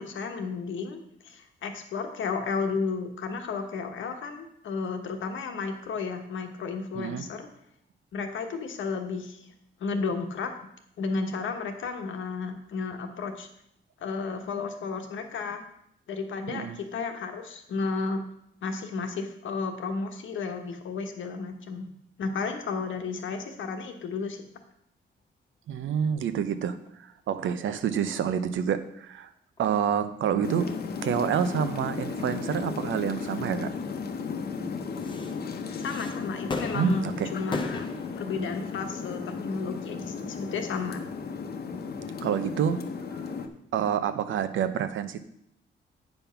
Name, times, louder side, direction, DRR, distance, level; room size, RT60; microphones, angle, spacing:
voice 1, 0.0-7.5 8.1-9.5 9.8-10.5 11.0-13.5 14.0-15.6 16.1-18.2 18.6-21.9 22.2-24.4 35.8-37.9 38.2-41.0, left 4 dB, 85° left, 5 dB, 1.3 m, -33 dB
voice 2, 6.9-7.3 16.5-16.8 25.7-29.3 29.6-30.7 31.0-33.7 36.7-37.3 42.2-42.8 43.1-43.2 43.7-45.2, right 8 dB, 90° right, 11 dB, 0.7 m, -28 dB
sound 1, 26.9-27.0 29.6-29.7 32.4-32.5 34.8-41.9 42.5-42.7, left 3 dB, 25° left, 0.8 m, -40 dB
sound 2, 30.4-43.5, left 5 dB, 55° left, 0.9 m, -35 dB
9.1 x 5.4 x 5.8 m, 0.75 s
wide cardioid pair, 155°, 19 cm